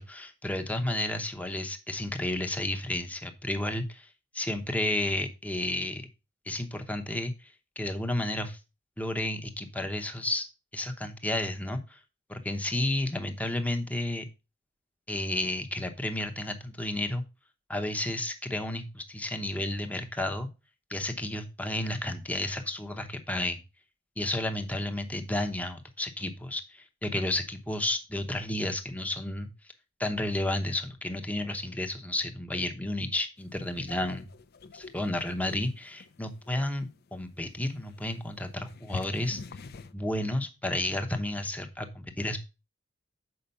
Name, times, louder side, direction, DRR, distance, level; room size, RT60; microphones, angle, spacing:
voice 1, 0.0-4.1 4.3-6.0 6.5-8.6 9.0-10.5 10.7-12.0 12.3-14.2 15.1-17.2 17.7-20.5 20.9-23.6 24.2-29.5 30.0-34.3 34.7-39.4 39.9-42.4, left 1 dB, 10° left, 6 dB, 0.9 m, -32 dB
sound 1, 33.4-39.9, left 4 dB, 55° left, 0.6 m, -46 dB
6.6 x 5.1 x 5.6 m, 0.29 s
head